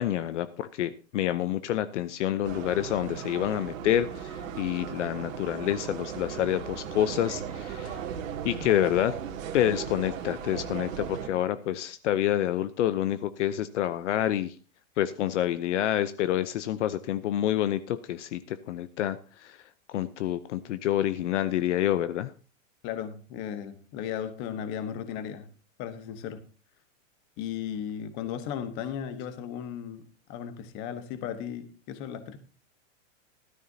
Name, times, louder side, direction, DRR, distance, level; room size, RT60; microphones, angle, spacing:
voice 1, 0.0-8.0 8.4-9.2 9.5-14.5 15.0-19.6 19.9-22.3, left 12 dB, 65° left, 13 dB, 0.8 m, -28 dB
sound 1, 2.4-11.3, right 8 dB, 80° right, 2.1 m, -37 dB
voice 2, 22.8-25.5 25.8-26.4 27.4-30.0 30.3-32.4, left 9 dB, 30° left, 10 dB, 1.2 m, -36 dB
14.5 x 13.0 x 2.8 m, 0.36 s
supercardioid pair, 165°, 39 cm